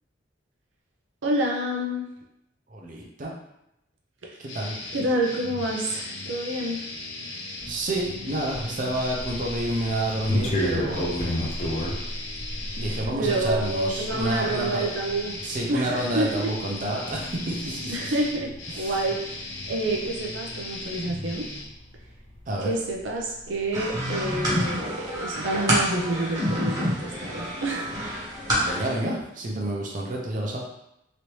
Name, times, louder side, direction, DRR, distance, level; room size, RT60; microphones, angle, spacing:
voice 1, 1.2-2.1 4.2-4.4 4.9-6.9 13.2-15.4 15.7-16.5 17.9-21.5 22.6-27.9, right 1 dB, 85° right, -1 dB, 0.6 m, -28 dB
voice 2, 2.7-3.3 4.4-4.7 7.7-11.5 12.8-14.8 15.4-18.1 18.7-18.9 22.5-22.7 28.6-30.6, right 1 dB, 45° right, -2 dB, 0.6 m, -29 dB
sound 1, 4.5-21.6, left 2 dB, 75° left, 0.8 m, -37 dB
sound 2, 7.6-23.1 23.4-24.6, equal, 35° left, 0.6 m, -34 dB
sound 3, 23.7-28.9, equal, 20° right, 1.0 m, -27 dB
3.1 x 2.7 x 3.1 m, 0.82 s
head